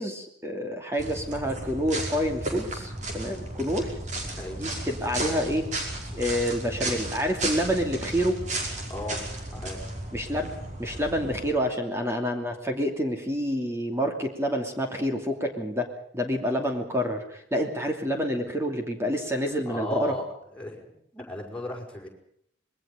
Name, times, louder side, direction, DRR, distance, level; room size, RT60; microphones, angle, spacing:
voice 1, 0.0-3.9 4.6-5.7 6.1-8.4 10.1-10.5 10.8-15.9 16.1-20.1, equal, 15° right, 3 dB, 2.8 m, -28 dB
sound 1, 1.0-11.5, right 2 dB, 40° right, 5.1 m, -34 dB
voice 2, 4.4-4.7 8.9-9.2 9.5-9.9 19.7-22.1, left 1 dB, 5° left, -2 dB, 5.5 m, -36 dB
26.0 x 21.5 x 5.2 m, 0.67 s
head